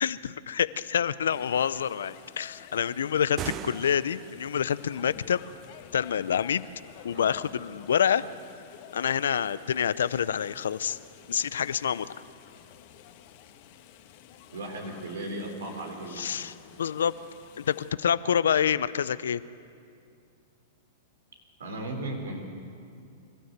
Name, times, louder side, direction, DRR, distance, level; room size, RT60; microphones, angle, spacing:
voice 1, 0.0-5.4 5.9-6.6 7.0-8.2 8.9-11.0 11.3-12.1 16.2-17.1 17.6-19.4, left 8 dB, 85° left, 16 dB, 0.6 m, -27 dB
sound 1, 1.3-17.9, left 10 dB, 55° left, 1.5 m, -51 dB
sound 2, 3.2-4.5, right 11 dB, 35° right, 0.5 m, -38 dB
voice 2, 14.5-16.4 21.6-22.5, right 1 dB, 85° right, 3 dB, 3.5 m, -36 dB
25.5 x 13.0 x 8.0 m, 2.4 s
hypercardioid pair, 120°, 0 cm